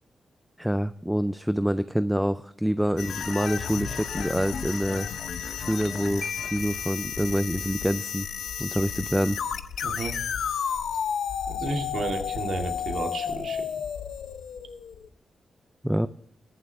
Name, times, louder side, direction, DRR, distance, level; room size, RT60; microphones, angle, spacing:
voice 1, 0.6-5.1 5.6-6.2 6.5-8.3 8.6-9.4 15.8-16.1, equal, ahead, 13 dB, 0.3 m, -26 dB
sound 1, 3.0-15.1, left 7 dB, 85° left, 0.7 m, -32 dB
Marimba xylophone, 6.2-8.0, left 5 dB, 35° left, 1.0 m, -39 dB
voice 2, 9.8-10.1 11.5-13.7, right 3 dB, 60° right, 2 dB, 2.3 m, -32 dB
22.0 x 7.5 x 3.5 m, 0.74 s
wide cardioid pair, 145°, 0 cm